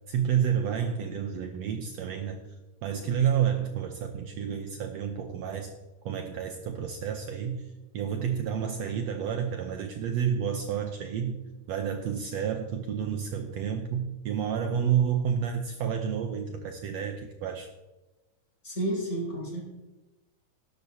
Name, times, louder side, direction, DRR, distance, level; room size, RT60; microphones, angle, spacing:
voice 1, 0.1-2.4 2.8-5.7 6.0-7.6 7.9-11.4 11.7-17.7, right 8 dB, 85° right, 5 dB, 1.5 m, -30 dB
voice 2, 18.6-19.6, right 1 dB, 20° left, -4 dB, 5.0 m, -31 dB
16.5 x 12.0 x 2.8 m, 1.1 s
omnidirectional pair, 4.0 m